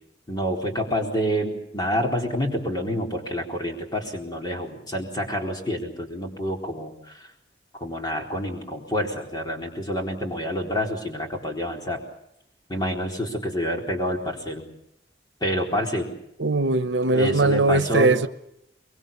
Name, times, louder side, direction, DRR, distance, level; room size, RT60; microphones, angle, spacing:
voice 1, 0.3-7.3 7.8-12.0 12.7-14.7 15.4-16.1 17.1-18.1, equal, 25° left, 4.1 m, -28 dB
voice 2, 16.4-18.3, right 2 dB, 85° right, 1.0 m, -20 dB
24.0 x 22.5 x 7.1 m
head